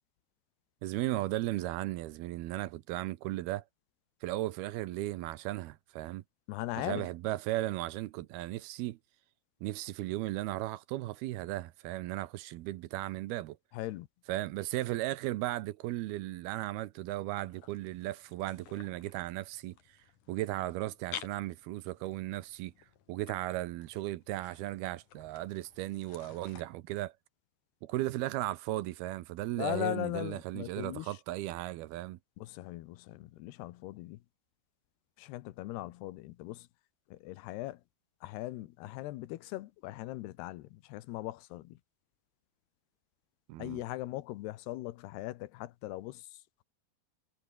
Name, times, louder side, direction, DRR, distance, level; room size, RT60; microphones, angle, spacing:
voice 1, 0.8-3.6 4.2-6.2 6.8-9.0 9.6-13.6 14.3-20.0 20.3-22.7 23.1-27.1 27.8-32.2 43.5-43.8, right 16 dB, 80° right, 2.7 m, -36 dB
voice 2, 6.5-7.1 13.7-14.1 29.6-31.2 32.4-34.2 35.2-36.7 37.1-37.8 38.2-41.8 43.6-46.6, left 17 dB, 85° left, 3.0 m, -39 dB
sound 1, 17.4-26.6, left 9 dB, 55° left, 3.1 m, -52 dB
omnidirectional pair, 4.6 m